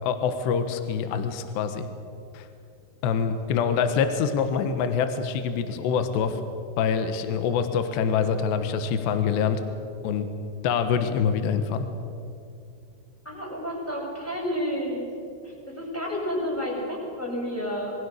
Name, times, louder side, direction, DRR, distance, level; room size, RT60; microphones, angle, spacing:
voice 1, 0.0-1.9 2.3-2.5 3.0-6.4 6.8-9.6 10.0-10.3 10.6-11.9, left 6 dB, 70° left, 8 dB, 3.1 m, -25 dB
voice 2, 13.2-15.1 15.4-17.9, equal, 5° left, -3 dB, 6.7 m, -30 dB
27.0 x 23.5 x 6.6 m, 2.5 s
omnidirectional pair, 5.8 m